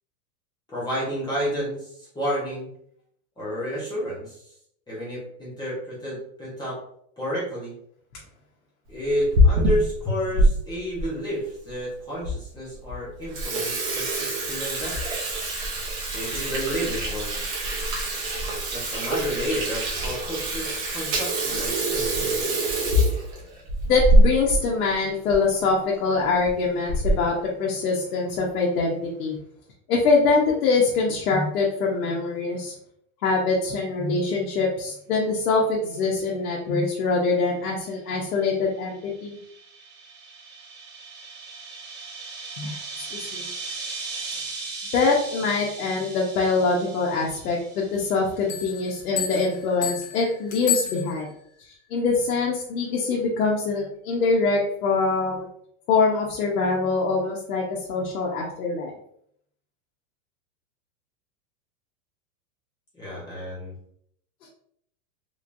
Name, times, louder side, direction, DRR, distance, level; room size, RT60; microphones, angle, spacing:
voice 1, 0.7-2.7 3.4-4.5 4.9-6.8 7.2-7.8 8.9-15.0 16.0-17.3 18.7-22.4 62.9-63.7, equal, 10° left, -8 dB, 0.9 m, -31 dB
Water tap faucet / Sink (filling or washing), 9.0-10.5 11.0-11.1 11.8-11.9 12.2-12.3 12.7-12.9 13.2-24.6 24.9-25.0 25.3-25.4 26.2-26.5 26.9-27.3, equal, 30° right, 0.9 m, -24 dB
voice 2, 23.9-29.4 29.9-32.7 33.2-39.4 42.6-42.8 43.1-43.5 44.9-51.3 51.7-55.5 55.9-58.9 64.4-64.5, left 4 dB, 90° left, -2 dB, 1.0 m, -24 dB
sound 1, 38.6-48.4, right 4 dB, 45° right, 1.5 m, -38 dB
sound 2, 48.5-51.5, left 8 dB, 40° left, 0.8 m, -31 dB
3.5 x 3.1 x 2.5 m, 0.69 s
supercardioid pair, 160°, 44 cm